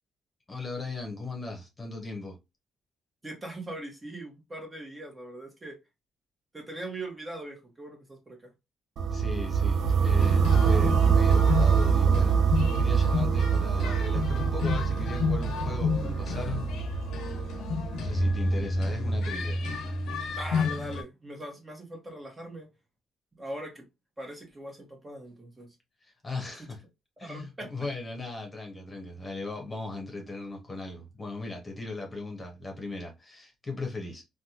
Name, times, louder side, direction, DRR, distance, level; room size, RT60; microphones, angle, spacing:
voice 1, 0.5-2.4 9.1-16.7 18.0-19.6 26.0-26.8 27.2-34.2, left 3 dB, 25° left, 1.0 m, -38 dB
voice 2, 3.2-5.8 6.5-8.5 20.3-22.7 23.4-23.8 24.2-25.7 27.2-27.7, right 1 dB, 20° right, 1.2 m, -40 dB
sound 1, 9.0-18.9, right 6 dB, 70° right, 0.5 m, -25 dB
sound 2, 10.2-21.0, left 4 dB, 80° left, 0.6 m, -31 dB
3.3 x 2.3 x 2.8 m
cardioid pair, 90°, 0 cm